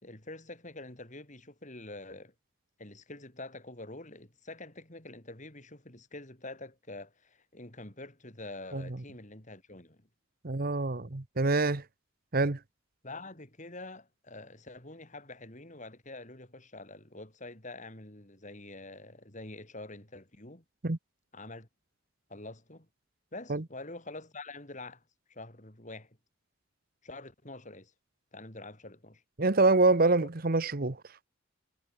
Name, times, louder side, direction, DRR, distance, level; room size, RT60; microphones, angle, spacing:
voice 1, 0.0-2.3 2.8-10.1 13.0-20.6 21.3-21.7 22.3-22.9 23.3-25.0 25.3-26.2 27.0-27.9 28.3-29.2 30.2-30.3, left 2 dB, 35° left, 4.2 m, -46 dB
voice 2, 10.4-11.8 12.3-12.6 20.8-21.0 23.5-23.6 29.4-31.0, right 3 dB, 45° right, 1.1 m, -25 dB
head